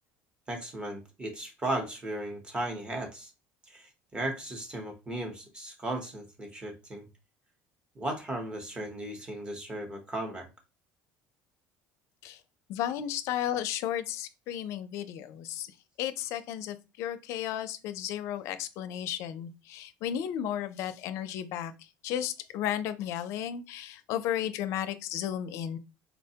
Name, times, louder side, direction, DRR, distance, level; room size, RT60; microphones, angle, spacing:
voice 1, 0.5-3.3 3.7-7.1 8.0-10.5, right 1 dB, 15° right, 0.8 m, -36 dB
voice 2, 12.7-15.7 16.0-21.7 22.0-25.8, left 10 dB, 60° left, 0.4 m, -34 dB
4.1 x 2.1 x 2.7 m
cardioid pair, 145°, 6 cm